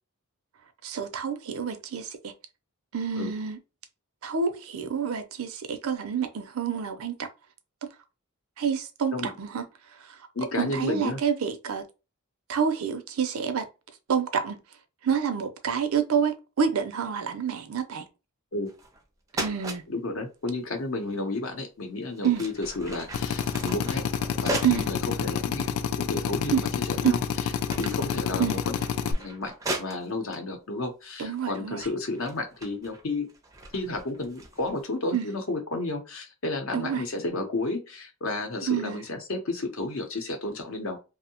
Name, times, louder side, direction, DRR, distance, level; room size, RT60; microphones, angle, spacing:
voice 1, 0.8-2.3 2.9-3.6 4.2-7.3 8.6-9.7 10.0-10.2 10.6-11.8 12.5-13.7 14.1-14.6 15.0-18.1 19.3-19.8 22.2-22.4 24.6-24.9 26.5-26.7 27.0-27.2 28.4-28.6 31.2-31.9 35.1-35.3 36.7-37.0 38.7-39.0, right 7 dB, 75° right, 0.5 m, -28 dB
voice 2, 10.3-11.2 18.5-18.7 19.9-24.0 24.4-26.6 26.8-27.2 27.8-28.8 29.0-29.5 29.8-33.3 33.7-41.0, left 2 dB, 65° left, 0.7 m, -32 dB
sound 1, 18.7-19.0 19.3-19.8 21.5-21.6 22.1-24.9 25.6-25.7 26.4-26.9 27.2-30.4 31.2-31.5 31.8-34.8, right 2 dB, 15° right, 0.4 m, -37 dB
Drill, 23.1-29.1, left 7 dB, 85° left, 0.3 m, -29 dB
2.6 x 2.0 x 2.8 m
head